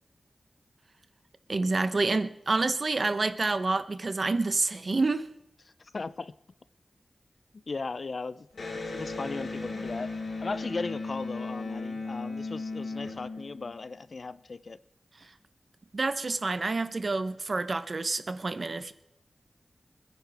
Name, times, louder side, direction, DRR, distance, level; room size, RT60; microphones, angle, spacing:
voice 1, 1.5-5.3 15.9-18.9, right 3 dB, 50° right, 0.8 m, -28 dB
voice 2, 5.9-6.3 7.7-8.5 8.9-10.1 10.4-14.8, left 3 dB, 60° left, 0.5 m, -37 dB
Electric guitar, 8.5-14.0, left 3 dB, 80° left, 4.1 m, -36 dB
25.5 x 10.5 x 3.5 m
wide cardioid pair, 80°, 0 cm